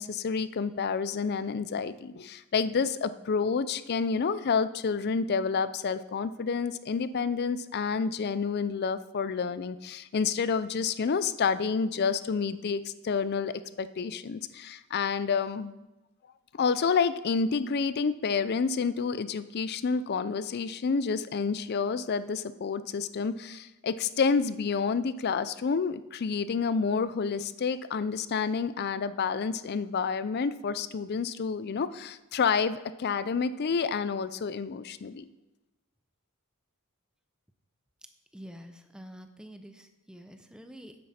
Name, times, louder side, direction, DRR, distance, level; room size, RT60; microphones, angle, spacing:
voice 1, 0.0-15.7 16.6-35.3, left 5 dB, 45° left, 14 dB, 0.4 m, -29 dB
voice 2, 38.3-41.0, equal, 5° right, 7 dB, 0.6 m, -47 dB
9.5 x 7.6 x 4.2 m, 1.0 s
head